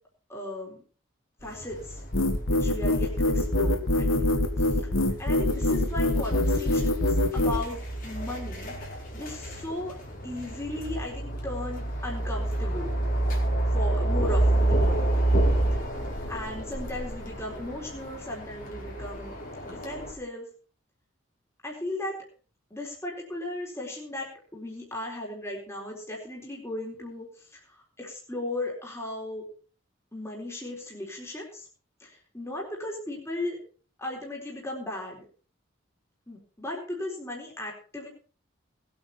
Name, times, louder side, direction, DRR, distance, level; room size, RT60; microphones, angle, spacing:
voice 1, 0.3-0.8 1.4-2.0 2.5-4.1 4.6-4.8 5.2-8.8 9.1-9.9 10.2-12.9 13.7-15.1 16.3-19.3 19.7-20.5 21.6-22.2 22.7-29.5 30.1-31.7 32.0-33.6 34.0-35.3 36.3-38.1, left 1 dB, 15° left, -2 dB, 4.0 m, -36 dB
sound 1, 1.4-20.1, right 1 dB, 40° left, 4.2 m, -30 dB
sound 2, 2.1-7.6, left 1 dB, 80° left, 1.6 m, -24 dB
20.0 x 8.8 x 4.2 m, 0.40 s
head